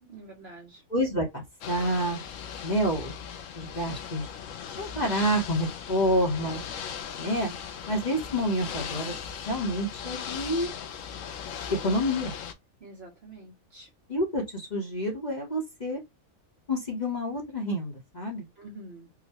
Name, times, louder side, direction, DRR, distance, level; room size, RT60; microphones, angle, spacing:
voice 1, 0.0-0.8 12.8-13.9 18.6-19.1, right 2 dB, 50° right, 1.1 m, -47 dB
voice 2, 0.9-2.2 2.6-3.1 3.5-4.3 4.8-6.6 7.2-7.5 7.9-9.1 9.5-10.7 11.7-12.3 14.1-16.0 16.7-18.4, equal, 35° left, 1.0 m, -28 dB
Ocean / Boat Water vehicle, 1.6-12.5, left 8 dB, 70° left, 0.9 m, -38 dB
3.9 x 2.2 x 2.8 m
omnidirectional pair, 1.5 m